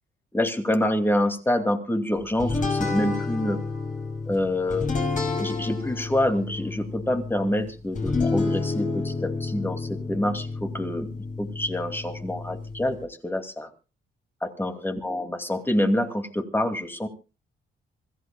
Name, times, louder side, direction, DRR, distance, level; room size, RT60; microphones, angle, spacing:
voice 1, 0.3-3.6 4.3-4.9 5.4-11.1 11.4-13.7 14.4-17.1, left 1 dB, 10° left, 7 dB, 2.5 m, -26 dB
sound 1, 2.4-13.0, left 3 dB, 40° left, 5.8 m, -30 dB
26.0 x 14.5 x 2.3 m, 0.33 s
cardioid pair, 90°, 20 cm